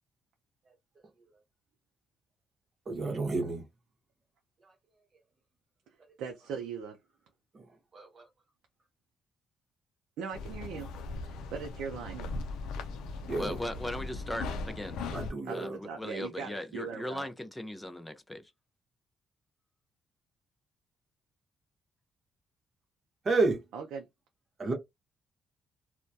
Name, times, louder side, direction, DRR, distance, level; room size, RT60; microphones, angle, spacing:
voice 1, 2.9-3.6 7.5-7.6 7.9-8.2 13.3-13.6 15.1-15.8 23.2-23.6 24.6-24.7, right 3 dB, 40° right, 0.8 m, -30 dB
voice 2, 6.2-7.0 10.2-10.9 11.2-12.3 15.4-17.3 23.7-24.1, right 6 dB, 90° right, 0.5 m, -39 dB
sound 1, 10.3-15.3, left 3 dB, 90° left, 0.4 m, -38 dB
voice 3, 13.4-15.0 15.5-18.5, left 1 dB, 10° left, 0.5 m, -38 dB
2.2 x 2.1 x 2.6 m
cardioid pair, 90°, 0 cm